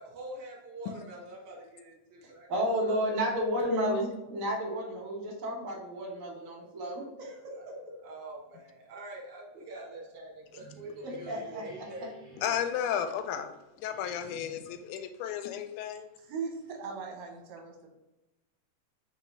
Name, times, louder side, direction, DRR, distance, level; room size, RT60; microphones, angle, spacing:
voice 1, 0.0-2.5 2.8-3.2 7.6-7.7 8.0-12.1, right 1 dB, 50° right, -2 dB, 1.6 m, -45 dB
voice 2, 2.2-7.4 11.3-11.6, equal, 85° right, -3 dB, 0.7 m, -32 dB
sound 1, 10.3-13.4 13.9-14.8, equal, 30° right, 1.6 m, -52 dB
voice 3, 12.4-13.5 13.8-16.1, left 9 dB, 90° left, 8 dB, 2.0 m, -33 dB
voice 4, 16.2-17.9, right 5 dB, 65° right, 0 dB, 1.7 m, -39 dB
4.4 x 3.7 x 3.1 m, 1.0 s
omnidirectional pair, 3.4 m